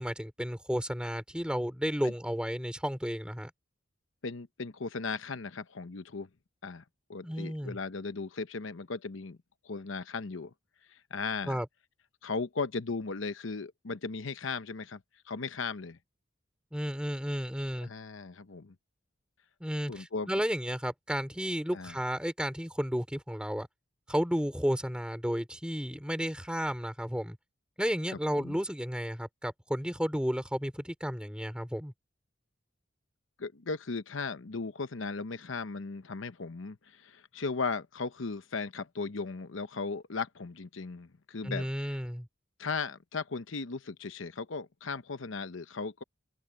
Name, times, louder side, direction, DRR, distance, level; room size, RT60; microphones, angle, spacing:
voice 1, 0.0-3.5 7.2-7.8 11.5-11.7 16.7-17.9 19.6-23.7 24.1-27.4 27.8-31.9 41.4-42.3, equal, 5° right, 3.6 m, -32 dB
voice 2, 4.2-6.3 6.6-6.8 7.1-9.4 9.6-10.5 10.9-11.6 12.2-15.0 15.3-16.0 17.8-18.7 19.9-20.3 21.7-22.0 28.3-28.6 33.4-42.0 42.6-46.0, left 4 dB, 80° left, 0.9 m, -37 dB
head